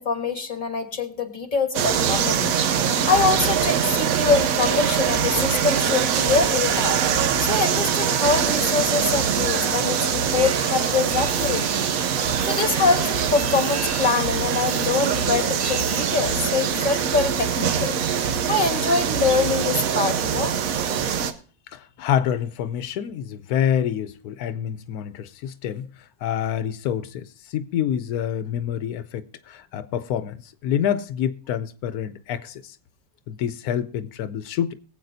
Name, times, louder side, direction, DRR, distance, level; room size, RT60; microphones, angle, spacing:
voice 1, 0.0-2.5 3.1-11.9 12.4-17.9 18.5-20.6, left 4 dB, 30° left, 1.5 m, -24 dB
sound 1, 1.7-21.3, right 8 dB, 70° right, 1.1 m, -23 dB
sound 2, 2.5-20.5, right 3 dB, 50° right, 1.6 m, -34 dB
sound 3, 10.3-16.0, right 2 dB, 20° right, 0.4 m, -37 dB
voice 2, 21.7-25.9 26.2-32.8 33.3-34.7, left 9 dB, 90° left, 1.2 m, -27 dB
22.0 x 8.0 x 2.6 m
omnidirectional pair, 1.5 m